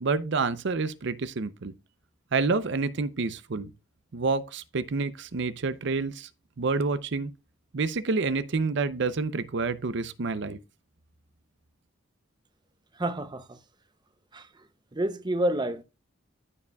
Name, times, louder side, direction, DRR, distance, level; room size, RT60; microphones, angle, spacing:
voice 1, 0.0-1.7 2.3-3.7 4.1-6.3 6.6-7.3 7.7-10.6, right 4 dB, 60° right, 0.6 m, -28 dB
voice 2, 13.0-13.6 14.3-14.5 14.9-15.8, right 1 dB, 20° right, 0.6 m, -28 dB
14.5 x 4.9 x 2.3 m
head